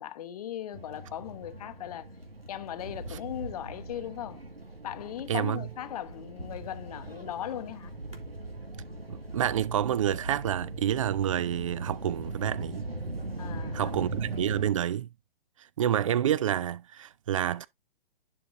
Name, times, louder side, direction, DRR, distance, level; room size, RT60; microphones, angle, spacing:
voice 1, 0.0-2.1 2.5-4.4 4.8-7.9 13.4-13.9, left 11 dB, 40° left, 0.8 m, -38 dB
sound 1, 0.7-14.7, right 2 dB, 90° right, 2.0 m, -40 dB
voice 2, 5.3-5.6 9.1-12.8 13.7-15.1 15.8-17.7, right 10 dB, 35° right, 0.4 m, -28 dB
11.0 x 4.6 x 2.5 m
figure-of-eight pair, 125°, 29 cm